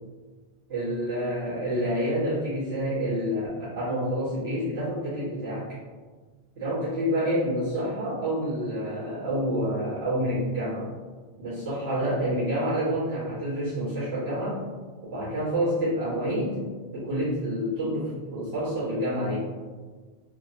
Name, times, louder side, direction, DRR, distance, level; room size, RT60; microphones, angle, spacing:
voice 1, 0.7-5.7 6.5-10.9 11.4-14.6 15.0-16.6 16.9-19.4, equal, 85° right, -12 dB, 1.4 m, -28 dB
3.3 x 2.0 x 2.5 m, 1.4 s
omnidirectional pair, 1.0 m